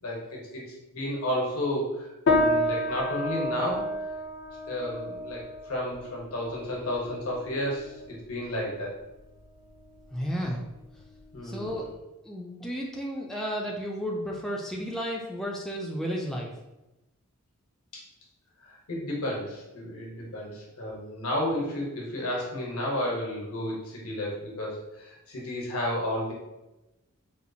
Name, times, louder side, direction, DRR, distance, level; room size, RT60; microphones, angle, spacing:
voice 1, 0.0-4.0 4.7-9.0 11.3-11.9 17.9-18.0 18.6-26.3, left 1 dB, 90° left, -3 dB, 1.1 m, -32 dB
sound 1, 2.3-11.9, left 1 dB, 55° left, 0.5 m, -31 dB
voice 2, 10.1-10.6 11.4-11.8 12.2-16.5, equal, ahead, -2 dB, 0.3 m, -32 dB
4.3 x 2.3 x 2.7 m, 0.99 s
head